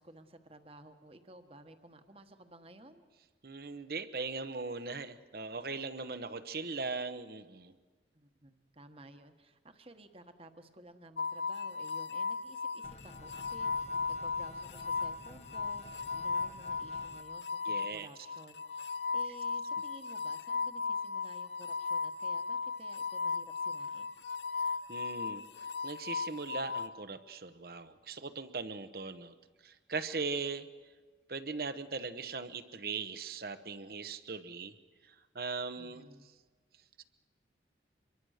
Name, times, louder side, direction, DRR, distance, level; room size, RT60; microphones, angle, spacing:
voice 1, 0.0-3.0 8.1-24.1 35.8-36.3, right 1 dB, 30° right, 8 dB, 1.3 m, -55 dB
voice 2, 3.4-7.7 17.6-18.1 24.9-25.4 25.8-29.3 29.6-30.7 31.3-34.7 35.0-36.0 37.0-37.1, right 4 dB, 55° right, 11 dB, 1.0 m, -39 dB
sound 1, 11.2-26.9, left 4 dB, 75° left, 0.7 m, -36 dB
sound 2, 12.8-17.2, left 2 dB, 40° left, 1.1 m, -52 dB
26.0 x 22.5 x 6.6 m, 1.4 s
head